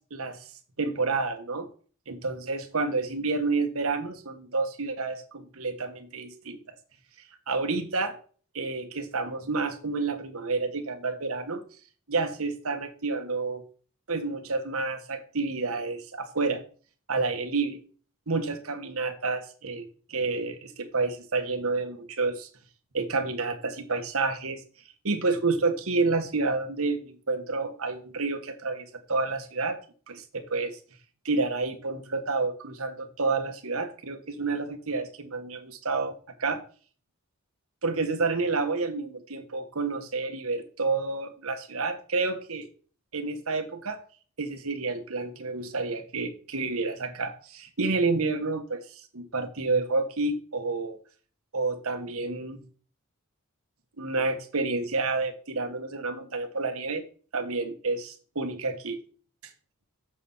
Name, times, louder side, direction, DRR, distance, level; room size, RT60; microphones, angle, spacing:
voice 1, 0.8-1.7 2.1-6.6 7.5-8.1 8.5-11.6 12.1-13.6 14.1-16.6 17.1-17.8 18.3-22.5 22.9-24.6 25.0-29.8 30.1-30.8 31.2-36.6 37.8-42.7 43.1-44.0 44.4-51.0 51.5-52.6 54.0-57.0 57.3-59.0, right 3 dB, 70° right, 7 dB, 1.4 m, -29 dB
7.1 x 6.7 x 5.5 m, 0.40 s
head